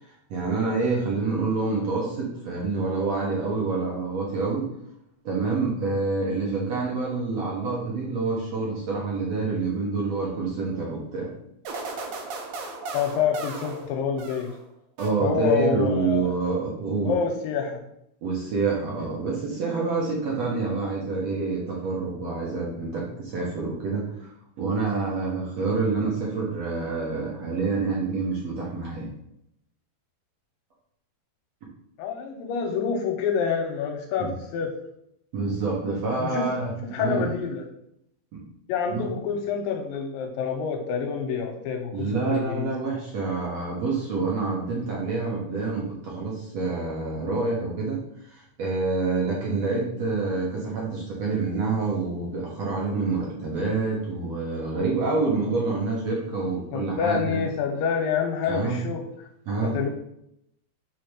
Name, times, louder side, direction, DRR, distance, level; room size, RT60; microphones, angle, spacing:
voice 1, 0.3-4.7 5.2-11.3 15.0-17.1 18.2-29.1 34.2-34.3 35.3-36.7 37.0-37.2 38.3-38.4 38.9-39.0 41.9-57.4 58.5-58.8 59.5-59.8, right 3 dB, 60° right, -4 dB, 1.9 m, -27 dB
sound 1, 11.6-14.6 15.0-15.6, right 3 dB, 80° right, 1.6 m, -37 dB
voice 2, 12.9-14.5 15.2-16.3 17.0-17.8 32.0-34.7 36.2-36.5 36.8-37.6 38.7-42.7 56.7-59.3 59.6-59.9, left 6 dB, 80° left, 3 dB, 2.2 m, -27 dB
5.2 x 4.6 x 6.3 m, 0.77 s
omnidirectional pair, 4.4 m